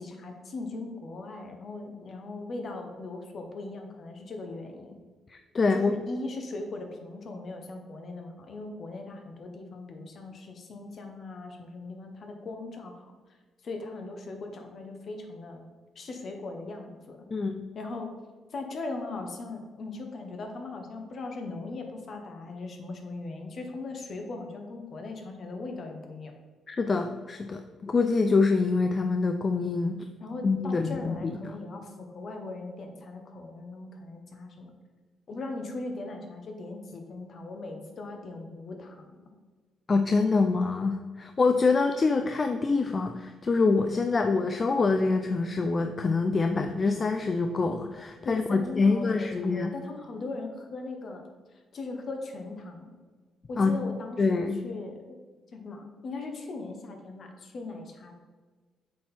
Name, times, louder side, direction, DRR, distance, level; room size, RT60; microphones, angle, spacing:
voice 1, 0.0-5.0 5.7-13.1 13.6-15.6 15.9-17.3 17.7-18.1 18.5-26.3 30.2-34.7 35.3-39.2 48.2-51.2 51.5-52.9 53.5-55.2 55.5-58.1, left 3 dB, 50° left, 4 dB, 1.2 m, -39 dB
voice 2, 5.3-6.0 17.3-17.6 26.7-30.1 30.4-31.3 39.9-49.7 53.6-53.8 54.2-54.6, left 4 dB, 35° left, 6 dB, 0.4 m, -25 dB
7.2 x 4.3 x 4.3 m, 1.4 s
cardioid pair, 90°, 0 cm